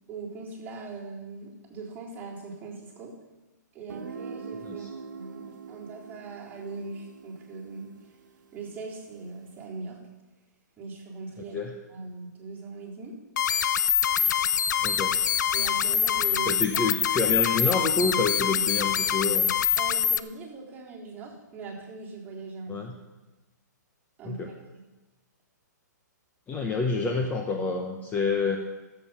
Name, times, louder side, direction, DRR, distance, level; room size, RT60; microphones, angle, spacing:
voice 1, 0.1-3.1 3.7-7.9 8.5-10.0 10.8-11.6 11.9-13.1 15.5-16.6 19.8-22.8 24.2-24.5, right 4 dB, 15° right, -6 dB, 3.7 m, -40 dB
Guitar, 3.9-9.5, right 5 dB, 85° right, 1.2 m, -43 dB
sound 1, 13.4-20.2, left 9 dB, 70° left, 0.5 m, -25 dB
voice 2, 14.8-15.2 16.5-19.6 22.7-23.0 24.2-24.5 26.5-28.6, left 3 dB, 15° left, 2 dB, 0.9 m, -28 dB
13.0 x 7.7 x 5.7 m, 1.1 s
hypercardioid pair, 140°, 10 cm